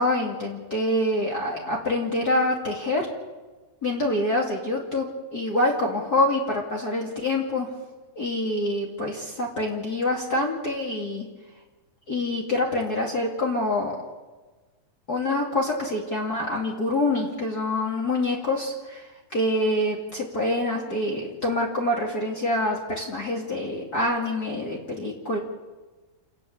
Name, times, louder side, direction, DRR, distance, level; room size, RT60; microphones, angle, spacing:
voice 1, 0.0-3.1 3.8-7.7 8.2-11.3 12.1-14.0 15.1-19.0 19.3-25.4, left 1 dB, 30° left, -3 dB, 2.6 m, -26 dB
29.5 x 10.5 x 8.5 m, 1.3 s
omnidirectional pair, 3.9 m